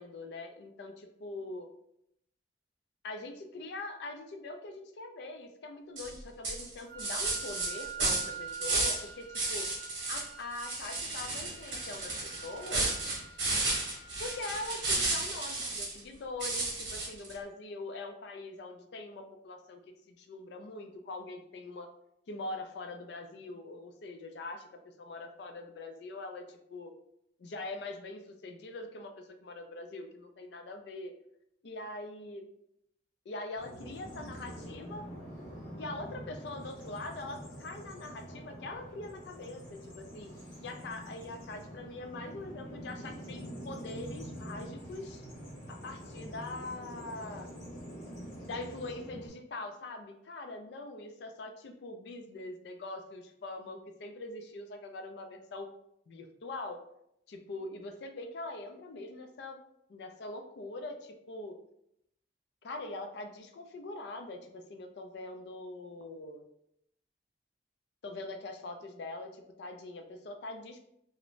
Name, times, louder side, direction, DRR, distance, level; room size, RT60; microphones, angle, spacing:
voice 1, 0.0-1.7 3.0-9.7 10.1-13.0 14.2-19.8 20.1-21.9 22.3-24.7 25.0-26.9 27.4-31.1 31.6-32.4 33.3-35.0 35.8-40.3 40.6-45.2 45.7-47.5 48.4-55.7 56.1-56.8 57.3-59.6 59.9-61.6 62.6-66.5 68.0-70.8, left 2 dB, 60° left, 5 dB, 0.3 m, -43 dB
sound 1, 6.0-6.1 6.4-9.1 9.3-10.3 10.6-16.0 16.4-17.3, right 2 dB, 75° right, 0.9 m, -33 dB
Wind instrument woodwind instrument, 6.9-14.8, right 6 dB, 55° right, 0.6 m, -47 dB
Bird vocalization bird call bird song, 33.6-49.3, equal, 40° left, 0.8 m, -45 dB
2.5 x 2.0 x 3.0 m, 0.77 s
head